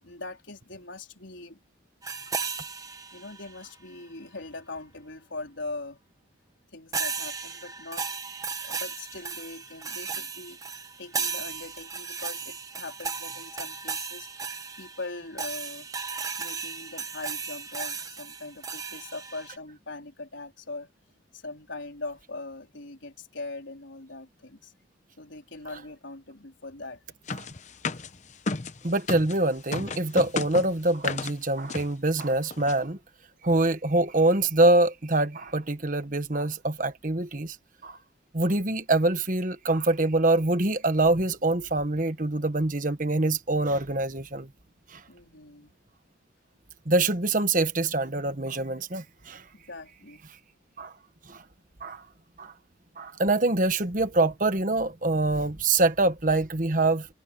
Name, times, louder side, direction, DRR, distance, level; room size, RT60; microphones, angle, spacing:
voice 1, 0.0-1.6 3.1-6.0 6.7-8.1 8.6-10.6 11.0-14.3 14.8-15.9 16.4-20.9 21.3-24.7 25.2-27.0 45.1-45.7 49.5-50.2, left 2 dB, 75° left, 4.1 m, -41 dB
sound 1, 2.0-3.6 6.9-19.6, right 5 dB, 20° right, 1.1 m, -35 dB
sound 2, 27.3-29.4 29.7-31.4 31.7-31.9 32.2-32.3 32.5-32.8, left 3 dB, 35° left, 0.8 m, -33 dB
voice 2, 28.8-33.0 33.4-37.6 37.8-38.0 38.3-44.5 44.9-45.0 46.8-49.4 50.8-50.9 51.3-51.4 51.8-52.0 52.4-52.5 53.0-57.1, right 2 dB, 40° right, 1.4 m, -25 dB
head